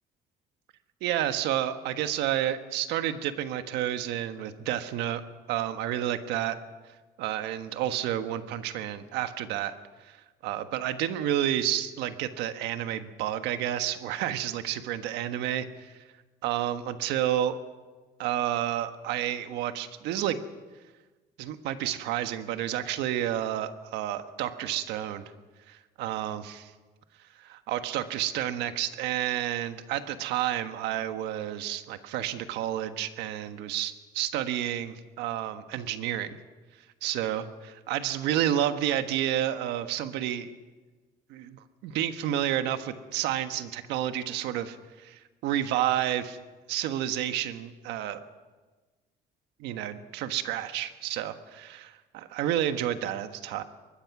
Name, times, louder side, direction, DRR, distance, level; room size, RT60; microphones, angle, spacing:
voice 1, 1.0-5.2 5.5-6.6 7.2-9.7 10.4-15.9 16.4-17.5 18.2-20.4 21.4-25.2 25.7-26.7 27.4-36.3 37.0-40.5 41.3-46.4 46.7-48.2 49.6-53.6, right 11 dB, 90° right, 9 dB, 1.4 m, -30 dB
24.0 x 20.5 x 6.1 m, 1.3 s
cardioid pair, 110°, 17 cm